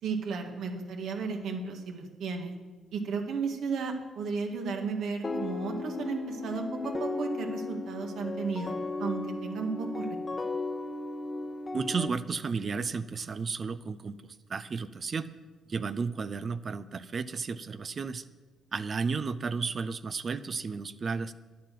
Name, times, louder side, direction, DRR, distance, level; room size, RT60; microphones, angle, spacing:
voice 1, 0.0-2.5 2.9-10.2, right 5 dB, 75° right, 3 dB, 1.9 m, -34 dB
sound 1, 5.2-12.1, left 3 dB, 30° left, 1.1 m, -35 dB
voice 2, 11.7-15.3 15.7-18.2 18.7-21.3, right 5 dB, 40° right, 13 dB, 0.6 m, -33 dB
10.5 x 9.4 x 7.5 m, 1.3 s
cardioid pair, 90°, 0 cm